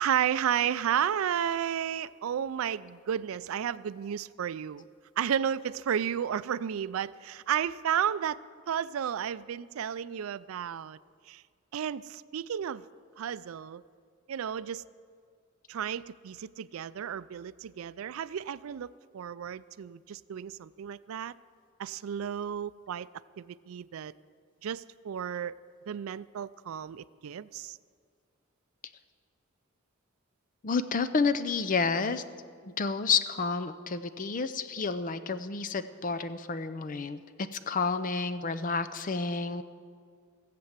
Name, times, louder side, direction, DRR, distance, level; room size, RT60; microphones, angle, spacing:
voice 1, 0.0-4.9 5.2-8.4 8.7-11.0 11.3-11.4 11.7-12.9 13.2-13.8 14.3-14.9 15.7-18.9 19.1-21.3 21.8-23.1 23.4-24.1 24.6-25.5 25.9-27.8, right 9 dB, 85° right, 17 dB, 0.4 m, -32 dB
voice 2, 30.6-32.2 32.6-37.2 37.5-39.6, left 4 dB, 40° left, 12 dB, 0.5 m, -30 dB
17.0 x 7.7 x 7.3 m, 2.1 s
head